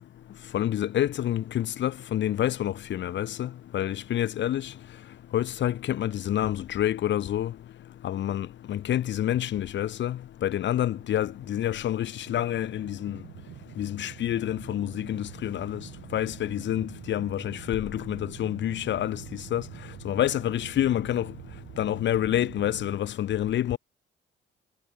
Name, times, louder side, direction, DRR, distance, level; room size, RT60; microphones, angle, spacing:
voice 1, 0.5-4.7 5.3-7.5 8.0-13.2 13.8-19.2 19.5-19.6 20.0-21.3 21.8-23.8, left 11 dB, 65° left, 1.1 m, -28 dB
sound 1, 10.5-23.0, right 12 dB, 75° right, 3.2 m, -46 dB
cardioid pair, 90°, 20 cm